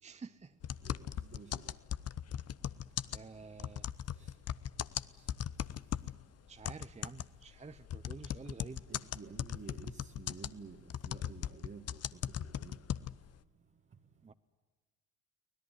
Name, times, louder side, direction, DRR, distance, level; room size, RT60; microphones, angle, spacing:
voice 1, 0.0-0.6 3.1-3.9 6.5-8.8 14.2-14.3, right 4 dB, 20° right, 0.8 m, -49 dB
sound 1, 0.6-6.2 6.6-13.3, left 10 dB, 45° left, 0.8 m, -38 dB
voice 2, 0.8-1.8 4.2-4.3 8.9-12.8, right 5 dB, 35° right, 1.8 m, -52 dB
24.5 x 17.5 x 9.5 m
supercardioid pair, 75°, 35 cm